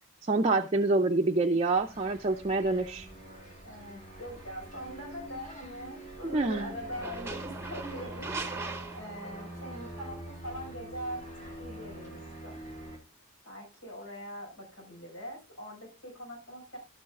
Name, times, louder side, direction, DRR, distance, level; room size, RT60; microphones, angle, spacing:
voice 1, 0.3-3.1 6.3-6.7, right 2 dB, 30° right, 2 dB, 0.5 m, -26 dB
sound 1, 1.7-13.0, right 1 dB, 40° left, 3.0 m, -45 dB
voice 2, 3.6-8.3 8.9-12.6 13.5-16.8, equal, 85° left, 0 dB, 5.4 m, -42 dB
sound 2, 4.3-4.5 6.8-9.7, right 3 dB, 10° right, 0.9 m, -40 dB
12.5 x 8.7 x 2.5 m, 0.28 s
head